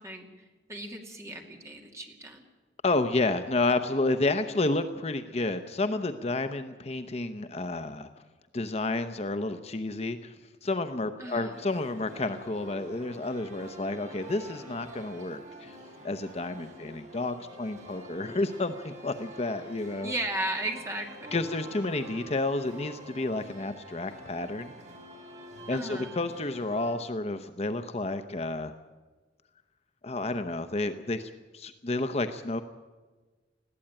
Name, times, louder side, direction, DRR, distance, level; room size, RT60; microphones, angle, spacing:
voice 1, 0.0-2.4 11.2-11.6 20.0-21.4 25.7-26.1, right 1 dB, 15° right, 2 dB, 2.5 m, -36 dB
voice 2, 2.8-8.1 8.5-10.3 10.6-15.8 16.0-20.1 21.3-24.7 25.7-28.7 30.0-32.6, left 2 dB, 35° left, 9 dB, 0.8 m, -30 dB
sound 1, 11.5-27.0, right 1 dB, 40° right, 5.3 m, -47 dB
20.5 x 15.0 x 8.8 m, 1.3 s
head